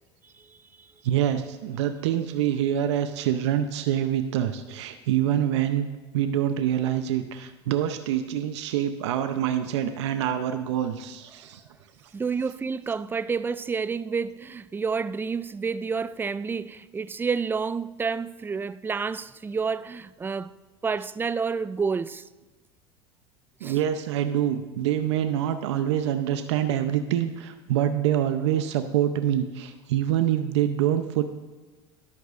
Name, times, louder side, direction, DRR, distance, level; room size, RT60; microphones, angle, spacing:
voice 1, 0.4-0.9 12.1-20.5 20.8-22.2 23.6-23.8, right 5 dB, 15° right, 0.4 m, -29 dB
voice 2, 1.0-5.9 6.1-11.6 23.6-31.2, right 10 dB, 80° right, 0.7 m, -25 dB
13.0 x 11.0 x 2.5 m
hypercardioid pair, 90°, 15 cm